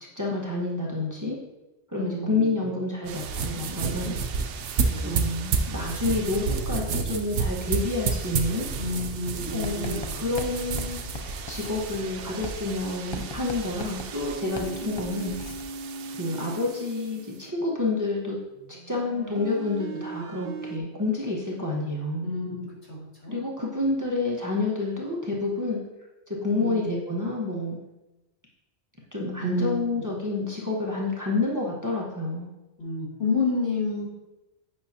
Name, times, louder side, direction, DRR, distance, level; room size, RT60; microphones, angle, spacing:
voice 1, 0.2-1.4 1.9-4.2 5.0-8.7 9.5-15.3 16.2-18.4 18.9-22.3 23.3-25.8 26.3-27.8 29.1-32.5, left 2 dB, 15° right, -4 dB, 1.1 m, -29 dB
voice 2, 2.0-2.7 4.9-5.2 8.7-10.3 16.4-16.5 22.2-22.6 22.9-23.4 26.5-26.9 29.4-29.8 32.8-34.0, left 3 dB, 70° left, -6 dB, 2.7 m, -30 dB
sound 1, 3.1-17.9 18.5-20.8, right 5 dB, 65° right, 0.7 m, -40 dB
sound 2, 3.1-12.7, right 5 dB, 90° right, 1.0 m, -30 dB
Writing, 9.6-15.7, left 2 dB, 35° left, 0.5 m, -39 dB
8.6 x 5.6 x 2.8 m, 1.0 s
omnidirectional pair, 1.2 m